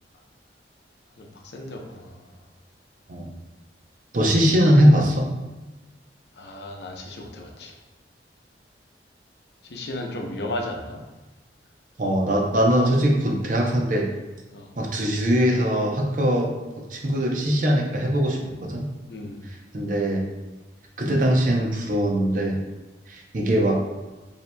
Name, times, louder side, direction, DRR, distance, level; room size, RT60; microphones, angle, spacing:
voice 1, 1.5-2.2 6.4-7.7 9.7-11.0 14.5-14.7 18.3-18.5 19.1-19.4, left 1 dB, 70° left, 1 dB, 0.7 m, -34 dB
voice 2, 4.1-5.3 12.0-14.1 14.8-16.5 16.9-18.9 19.7-20.2 21.0-22.6 23.1-23.8, equal, 50° right, 0 dB, 0.6 m, -21 dB
6.9 x 2.8 x 2.2 m, 1.1 s
head